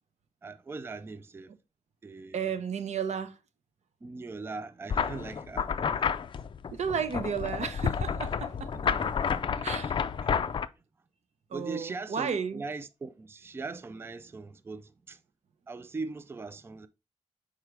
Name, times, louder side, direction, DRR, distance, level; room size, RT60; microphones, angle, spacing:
voice 1, 0.4-1.5 2.0-2.5 4.0-6.3 8.7-9.8 10.2-10.4 11.5-15.2 15.7-16.9, right 3 dB, 20° right, 0.4 m, -41 dB
voice 2, 2.3-3.4 6.7-8.7 9.6-10.0 11.5-12.6, right 7 dB, 80° right, 0.8 m, -33 dB
sound 1, 4.9-10.7, left 6 dB, 45° left, 0.4 m, -30 dB
6.0 x 4.8 x 3.3 m
wide cardioid pair, 150°, 12 cm